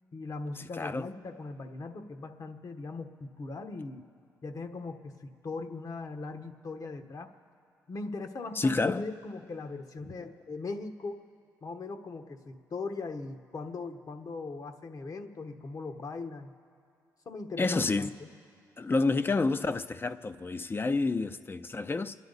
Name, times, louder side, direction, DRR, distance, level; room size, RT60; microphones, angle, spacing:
voice 1, 0.1-4.0 4.4-7.3 7.9-11.2 11.6-16.5 17.2-18.3, left 3 dB, 50° left, 1.2 m, -39 dB
voice 2, 8.6-9.0 17.6-18.1 18.8-22.2, left 3 dB, 30° left, 0.6 m, -29 dB
27.0 x 10.5 x 4.0 m
supercardioid pair, 55°, 7 cm